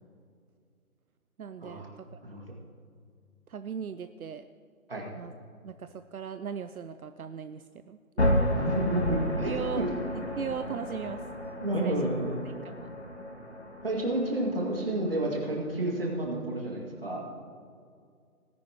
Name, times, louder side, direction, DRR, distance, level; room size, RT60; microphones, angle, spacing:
voice 1, 1.4-2.1 3.5-4.4 5.1-5.3 5.6-8.0 9.5-9.9 10.4-11.2 11.8-12.0 12.5-12.9, right 7 dB, 80° right, 10 dB, 0.6 m, -38 dB
voice 2, 2.2-2.6 4.9-5.1 8.6-9.9 11.6-12.4 13.8-17.2, right 1 dB, 40° right, -2 dB, 2.1 m, -30 dB
sound 1, 8.2-16.2, left 1 dB, 45° left, 1.3 m, -32 dB
18.0 x 11.0 x 3.0 m, 2.2 s
figure-of-eight pair, 175°, 43 cm